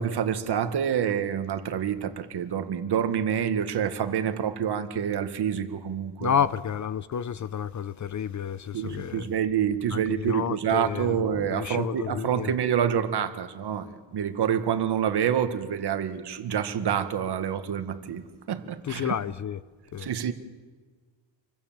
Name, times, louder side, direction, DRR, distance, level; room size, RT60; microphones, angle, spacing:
voice 1, 0.0-6.4 8.7-19.1 20.0-20.3, right 8 dB, 60° right, 1.8 m, -27 dB
voice 2, 6.2-9.3 9.9-10.0 10.3-12.5 18.8-19.6 19.9-20.1, left 8 dB, 40° left, 0.7 m, -30 dB
28.0 x 24.0 x 7.5 m
cardioid pair, 155°, 45 cm